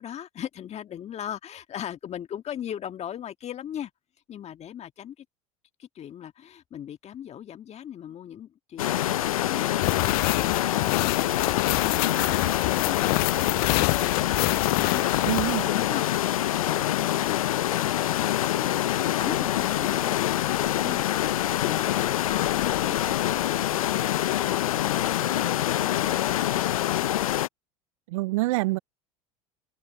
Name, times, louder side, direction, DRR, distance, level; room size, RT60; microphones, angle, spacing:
voice 1, 0.0-3.9 4.3-5.3 5.8-14.5 14.8-27.1, left 10 dB, 40° left, 1.8 m, -39 dB
sound 1, 8.8-27.5, left 13 dB, 80° left, 0.8 m, -25 dB
sound 2, 9.8-15.6, left 32 dB, 55° left, 0.4 m, -27 dB
voice 2, 15.2-15.7 28.1-28.8, right 20 dB, 70° right, 0.4 m, -26 dB
open air
hypercardioid pair, 80°, 18 cm